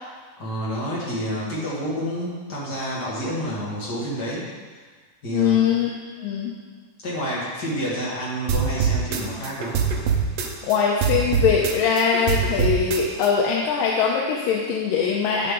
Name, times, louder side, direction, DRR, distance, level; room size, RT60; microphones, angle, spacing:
voice 1, 0.4-4.4 5.2-5.6 7.0-9.8, equal, 35° left, -7 dB, 2.3 m, -29 dB
voice 2, 5.3-5.9 6.2-6.5 10.7-15.5, left 7 dB, 85° left, -2 dB, 2.4 m, -21 dB
sound 1, 8.5-10.8 11.0-13.3, right 6 dB, 75° right, 1.5 m, -23 dB
11.0 x 6.8 x 3.8 m, 1.5 s
omnidirectional pair, 3.9 m